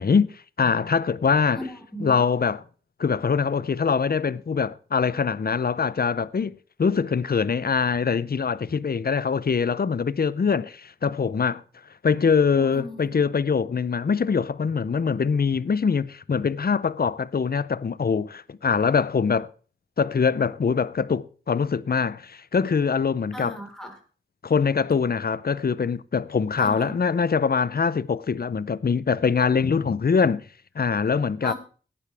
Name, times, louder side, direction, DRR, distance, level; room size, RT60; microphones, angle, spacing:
voice 1, 0.0-1.6 2.0-2.6 3.0-11.6 12.0-19.5 20.0-23.6 24.4-30.4 30.8-31.5, left 5 dB, 45° left, 0.6 m, -23 dB
voice 2, 1.6-2.2 12.6-13.1 23.3-24.0 26.6-27.0 31.4-31.5, equal, ahead, 4.3 m, -36 dB
17.0 x 9.9 x 3.4 m
wide cardioid pair, 55°, 21 cm